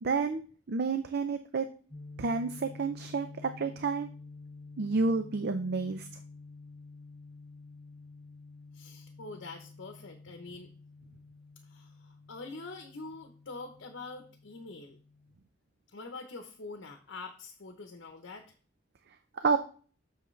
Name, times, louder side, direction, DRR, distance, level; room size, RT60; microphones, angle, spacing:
voice 1, 0.0-1.7 2.2-4.1 4.8-6.1 19.4-19.6, right 4 dB, 55° right, 8 dB, 0.5 m, -30 dB
sound 1, 1.9-15.4, left 3 dB, 25° left, 3.3 m, -50 dB
voice 2, 8.7-10.7 11.6-15.0 15.9-18.5, left 3 dB, 70° left, 5 dB, 0.9 m, -45 dB
7.8 x 6.5 x 3.2 m, 0.41 s
head